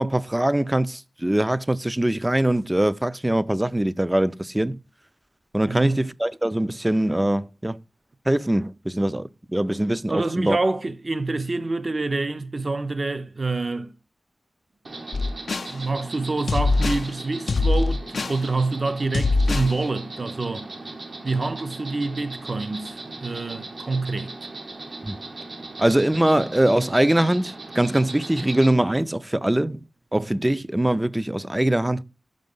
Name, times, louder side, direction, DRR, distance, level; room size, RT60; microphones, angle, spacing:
voice 1, 0.0-4.8 5.5-7.8 8.3-10.6 25.0-25.2 25.8-29.8 30.1-32.0, right 1 dB, 15° right, 0.4 m, -22 dB
voice 2, 5.7-6.0 10.1-13.9 15.7-20.7 21.2-24.4, right 3 dB, 50° right, 0.7 m, -27 dB
Insect, 14.8-28.7, right 2 dB, 70° right, 1.2 m, -38 dB
sound 1, 15.1-15.7 16.5-17.1 17.5-18.4 19.1-19.7, left 3 dB, 80° left, 0.4 m, -22 dB
5.7 x 5.3 x 5.3 m
wide cardioid pair, 70°, 0 cm